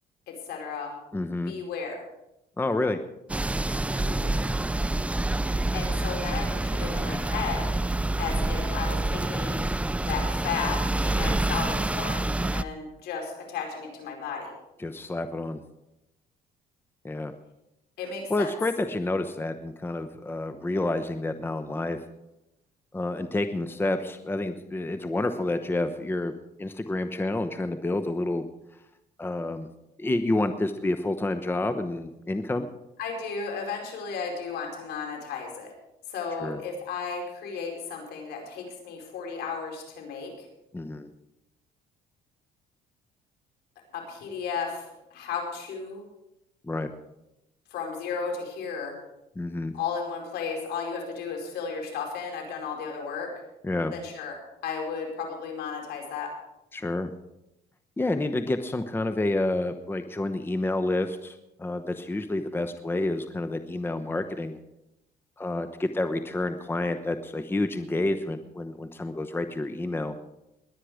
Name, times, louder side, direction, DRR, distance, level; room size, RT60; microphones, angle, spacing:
voice 1, 0.3-1.0 1.5-2.0 4.0-4.4 5.4-7.7 8.2-9.7 10.0-14.5 18.0-18.5 33.0-35.7 36.1-40.5 43.9-46.0 47.7-48.9 49.7-53.3 53.9-54.3 54.6-56.3, left 5 dB, 75° left, 1 dB, 4.9 m, -34 dB
voice 2, 1.1-1.5 2.6-3.0 14.8-15.6 17.0-17.3 18.3-22.0 22.9-26.3 26.6-28.5 29.2-29.7 30.0-32.7 36.4-36.6 40.7-41.1 46.6-46.9 49.4-49.7 53.6-53.9 56.7-57.1 58.0-64.6 65.4-70.1, left 2 dB, 15° left, 9 dB, 0.9 m, -29 dB
sound 1, 3.3-12.6, right 2 dB, 5° right, 0.5 m, -27 dB
21.0 x 9.4 x 5.0 m, 0.89 s
cardioid pair, 110°, 17 cm